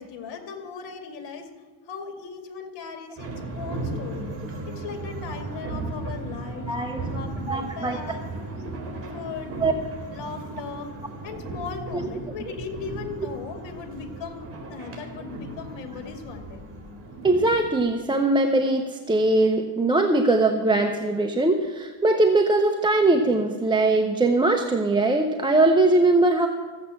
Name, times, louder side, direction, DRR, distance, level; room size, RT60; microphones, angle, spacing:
voice 1, 0.0-1.5 1.8-4.3 4.7-6.8 7.1-8.2 9.1-9.5 10.1-10.9 11.2-16.6, left 5 dB, 85° left, 6 dB, 2.3 m, -37 dB
sound 1, 3.2-17.8, right 2 dB, 30° right, 4.1 m, -36 dB
voice 2, 6.7-7.0 7.5-8.0 9.6-9.7 11.9-12.1 17.2-26.5, right 2 dB, 10° right, 4 dB, 0.7 m, -21 dB
14.0 x 8.3 x 7.5 m, 1.5 s
cardioid pair, 145°, 43 cm